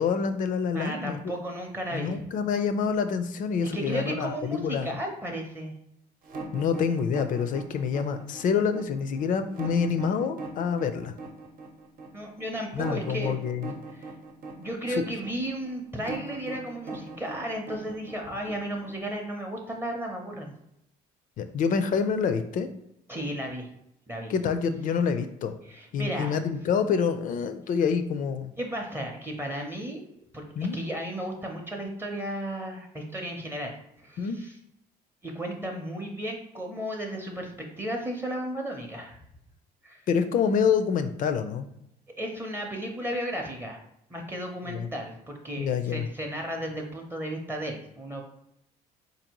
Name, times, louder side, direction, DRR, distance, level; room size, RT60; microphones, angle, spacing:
voice 1, 0.0-1.3 1.9-4.9 6.5-11.1 12.7-13.7 14.9-15.0 21.4-22.7 24.3-25.5 25.9-28.5 30.6-30.8 34.2-34.4 40.1-41.7 44.6-44.9 45.6-46.1, left 6 dB, 50° left, 10 dB, 0.4 m, -27 dB
voice 2, 0.7-2.2 3.6-5.7 12.1-13.4 13.9-14.1 14.6-20.5 23.1-23.7 24.1-24.3 25.7-26.3 28.6-30.1 30.3-30.5 30.7-34.5 35.2-39.2 39.8-40.0 42.2-43.8 44.1-48.2, right 1 dB, 15° right, 1 dB, 0.6 m, -34 dB
sound 1, 6.2-19.1, right 3 dB, 55° right, 0.8 m, -40 dB
3.9 x 2.6 x 2.9 m, 0.80 s
cardioid pair, 110°, 17 cm